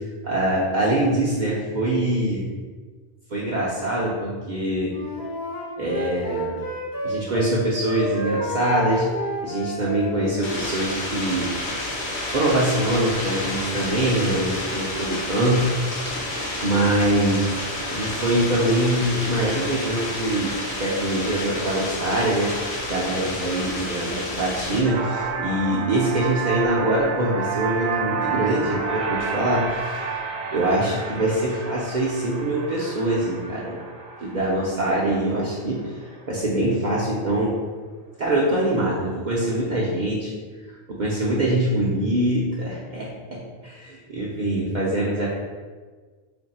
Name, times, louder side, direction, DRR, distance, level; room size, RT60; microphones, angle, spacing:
voice 1, 0.2-2.5 3.3-4.9 5.8-6.6 7.0-9.0 9.4-11.5 12.3-15.7 16.6-17.5 17.9-22.5 22.9-30.1 30.5-33.8 34.2-37.5 38.2-40.3 40.7-45.3, right 1 dB, 50° right, -6 dB, 0.6 m, -24 dB
Wind instrument woodwind instrument, 4.9-7.5 7.7-10.5, equal, 25° left, 0.6 m, -30 dB
sound 1, 10.4-24.8, left 1 dB, 50° left, 0.8 m, -30 dB
sound 2, 24.8-36.4, right 5 dB, 75° right, 0.9 m, -31 dB
3.0 x 2.5 x 4.1 m, 1.5 s
omnidirectional pair, 1.1 m